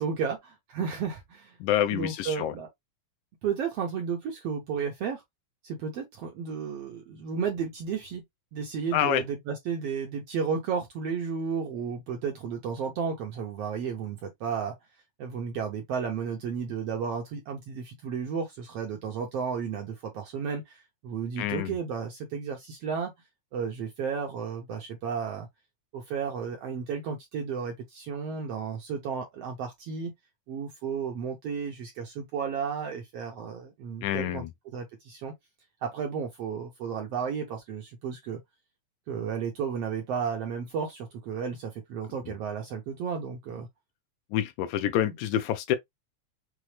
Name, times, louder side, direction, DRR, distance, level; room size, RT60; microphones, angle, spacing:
voice 1, 0.0-1.6 1.9-2.7 3.4-5.2 5.6-8.2 8.5-14.7 15.2-23.1 23.5-25.5 25.9-30.1 30.5-34.4 34.7-35.3 35.8-38.4 39.1-43.7, right 6 dB, 70° right, 1.5 m, -33 dB
voice 2, 1.6-2.6 8.9-9.2 21.4-21.8 34.0-34.5 44.3-45.8, left 11 dB, 80° left, 1.9 m, -27 dB
6.0 x 2.1 x 3.2 m
omnidirectional pair, 3.6 m